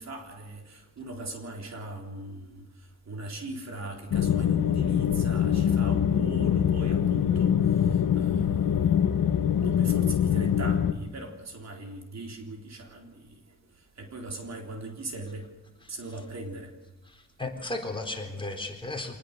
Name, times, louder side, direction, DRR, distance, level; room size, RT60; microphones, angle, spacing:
voice 1, 0.0-2.6 3.1-8.9 9.6-13.4 14.0-15.5 15.9-16.7, right 2 dB, 55° right, 3 dB, 3.6 m, -40 dB
sound 1, 4.1-10.9, left 9 dB, 90° left, 1.2 m, -24 dB
voice 2, 17.1-19.2, left 2 dB, 15° left, 2 dB, 3.9 m, -35 dB
26.5 x 19.5 x 6.6 m, 1.1 s
wide cardioid pair, 120°, 33 cm